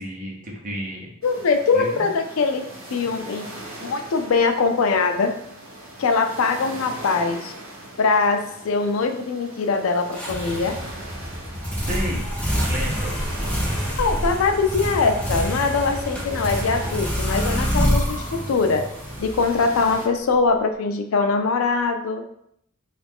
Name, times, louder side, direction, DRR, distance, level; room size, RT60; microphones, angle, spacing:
voice 1, 0.0-1.1 1.7-2.1 11.7-12.3 12.6-13.2, equal, 40° right, -2 dB, 0.8 m, -32 dB
voice 2, 1.2-2.6 2.9-3.5 3.8-5.3 6.0-7.5 8.0-10.8 14.0-18.8 19.2-22.2, left 4 dB, 75° left, 6 dB, 0.4 m, -22 dB
sound 1, 1.2-20.1, right 1 dB, 75° right, 0.8 m, -40 dB
sound 2, 10.1-19.9, equal, 5° left, 0.6 m, -26 dB
3.1 x 2.4 x 3.4 m, 0.75 s
head